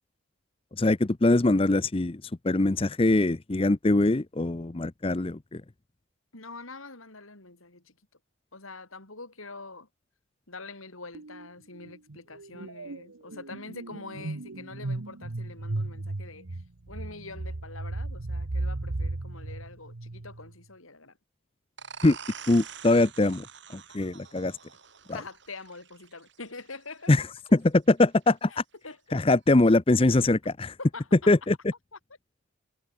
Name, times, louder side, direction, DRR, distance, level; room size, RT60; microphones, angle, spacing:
voice 1, 0.8-5.4 22.0-22.2 22.5-23.4 23.9-24.5 27.1-27.2 27.5-28.6 29.1-30.7 31.3-31.6, left 2 dB, 25° left, 0.6 m, -22 dB
voice 2, 6.3-7.9 8.5-9.9 10.5-16.6 16.9-21.2 25.1-27.1 28.5-29.2 30.8-31.3 31.9-32.0, left 3 dB, 90° left, 5.4 m, -44 dB
sound 1, 11.1-11.5 11.7-20.5, right 2 dB, 85° right, 1.2 m, -35 dB
sound 2, 21.8-27.2, right 7 dB, 60° right, 4.4 m, -46 dB
head